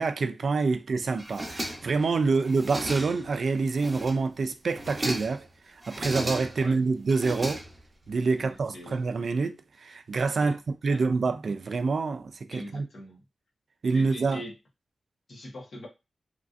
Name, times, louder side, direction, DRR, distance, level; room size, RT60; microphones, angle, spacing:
voice 1, 0.0-7.6 8.1-9.5 9.8-10.6 10.8-12.9 13.8-14.4, right 4 dB, 65° right, 0.3 m, -27 dB
sound 1, 1.2-2.1 2.4-3.3 3.7-4.3 4.7-5.4 5.8-6.7 7.1-8.1, right 1 dB, 15° right, 0.7 m, -35 dB
voice 2, 8.4-9.1 10.4-10.6 10.9-11.0 12.5-13.2 13.9-14.5 15.3-15.9, left 1 dB, 65° left, 1.1 m, -43 dB
3.1 x 2.6 x 2.4 m
wide cardioid pair, 125°, 0 cm